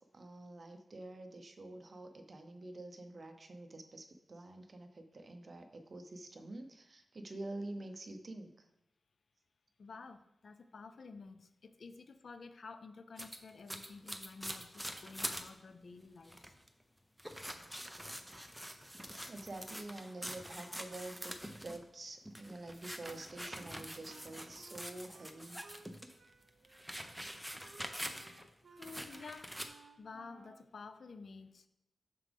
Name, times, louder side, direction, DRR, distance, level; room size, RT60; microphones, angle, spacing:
voice 1, 0.1-8.5 19.3-25.6, right 2 dB, 45° right, 6 dB, 0.7 m, -47 dB
voice 2, 9.8-16.4 28.7-29.5 30.0-31.7, left 4 dB, 65° left, 10 dB, 0.5 m, -51 dB
sound 1, 13.2-15.5 15.9-16.0 16.2-16.7 17.2-21.8 22.2-26.1 26.5-28.5 28.8-29.7, equal, ahead, 0.6 m, -45 dB
Wind instrument woodwind instrument, 23.0-25.9 26.2-30.7, right 4 dB, 75° right, 0.5 m, -61 dB
7.4 x 6.0 x 3.5 m, 0.89 s
wide cardioid pair, 105°, 0 cm